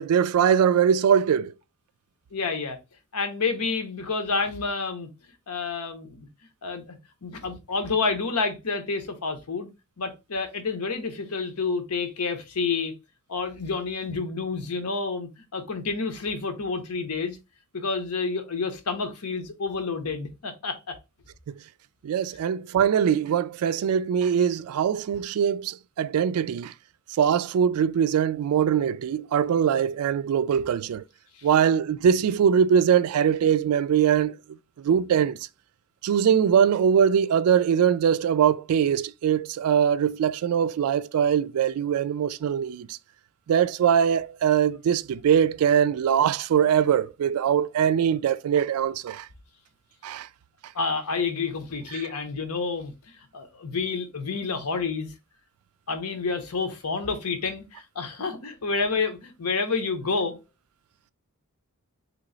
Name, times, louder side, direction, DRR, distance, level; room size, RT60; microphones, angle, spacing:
voice 1, 0.0-1.5 22.0-26.7 27.2-31.0 31.4-34.4 34.8-35.4 36.0-43.0 43.5-49.3 50.0-50.3, right 8 dB, 75° right, 0.3 m, -22 dB
voice 2, 2.3-2.8 3.1-5.1 5.5-6.3 6.6-9.7 10.0-12.9 13.3-17.4 17.7-20.8 31.4-31.5 50.7-55.1 55.9-60.4, left 4 dB, 90° left, 0.9 m, -29 dB
3.0 x 3.0 x 3.8 m
head